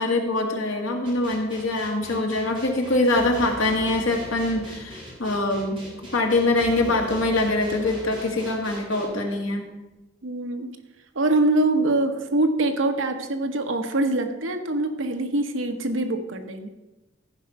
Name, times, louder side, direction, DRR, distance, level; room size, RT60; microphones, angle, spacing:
voice 1, 0.0-5.8 6.1-9.6, left 2 dB, 85° left, 1 dB, 1.8 m, -24 dB
sound 1, 1.0-9.0, right 1 dB, 25° right, 3.1 m, -42 dB
sound 2, 3.1-9.1, right 1 dB, 10° left, 3.3 m, -44 dB
voice 2, 10.2-10.8 11.1-16.7, right 2 dB, 75° right, 6 dB, 1.0 m, -24 dB
14.5 x 5.2 x 5.6 m, 1.1 s
head